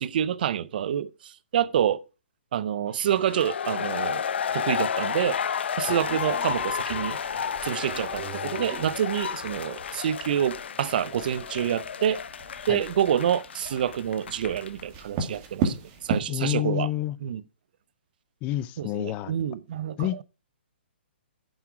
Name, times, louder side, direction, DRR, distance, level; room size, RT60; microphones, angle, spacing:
voice 1, 0.0-2.0 2.5-4.2 4.5-5.4 5.8-7.2 7.6-12.2 12.7-16.9 17.2-17.4 18.8-20.2, right 9 dB, 50° right, 0.6 m, -27 dB
sound 1, 3.2-14.8, left 7 dB, 70° left, 0.7 m, -32 dB
sound 2, 5.8-16.2, right 5 dB, 30° right, 2.3 m, -37 dB
voice 2, 16.3-17.2 18.4-19.3 20.0-20.2, left 14 dB, 20° left, 0.5 m, -28 dB
10.5 x 7.5 x 4.8 m
hypercardioid pair, 150°, 6 cm